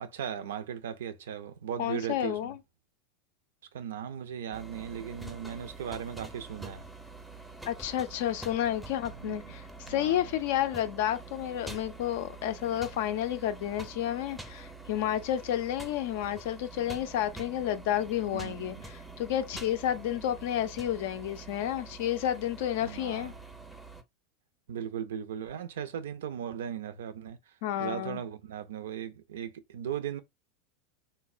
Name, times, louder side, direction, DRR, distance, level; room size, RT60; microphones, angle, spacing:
voice 1, 0.0-2.5 3.7-6.8 9.2-9.5 9.9-10.2 18.3-18.8 22.8-23.3 24.7-27.4 27.8-30.2, right 9 dB, 65° right, 0.4 m, -37 dB
voice 2, 1.8-2.6 7.7-23.3 27.6-28.2, left 11 dB, 55° left, 0.4 m, -31 dB
sound 1, 4.5-24.0, right 3 dB, 5° right, 0.5 m, -46 dB
3.2 x 2.0 x 2.4 m
figure-of-eight pair, 85°, 0 cm